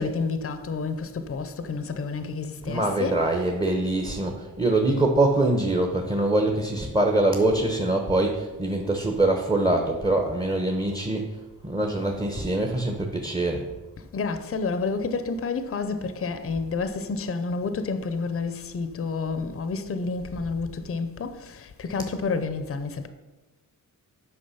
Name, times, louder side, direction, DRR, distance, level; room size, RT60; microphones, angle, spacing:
voice 1, 0.0-3.4 14.0-23.1, left 4 dB, 40° left, 0.6 m, -30 dB
voice 2, 2.7-11.3 11.6-13.6, right 2 dB, 15° right, 0.9 m, -24 dB
8.6 x 5.9 x 5.6 m
wide cardioid pair, 150°, 35 cm